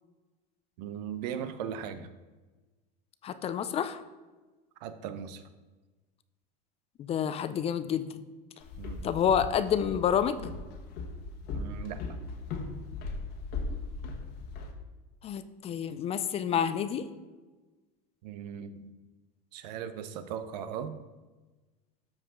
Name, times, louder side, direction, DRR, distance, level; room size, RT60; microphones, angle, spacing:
voice 1, 0.8-2.1 4.8-5.4 8.8-9.0 11.5-12.0 18.2-19.0 19.5-21.0, right 8 dB, 80° right, 11 dB, 0.8 m, -38 dB
voice 2, 3.2-4.0 7.0-8.2 9.0-10.4 15.2-17.1, left 8 dB, 30° left, 12 dB, 0.5 m, -29 dB
Walk footsteps, 8.6-14.7, left 3 dB, 50° left, 1.3 m, -38 dB
13.0 x 4.9 x 3.8 m, 1.2 s
supercardioid pair, 135°, 21 cm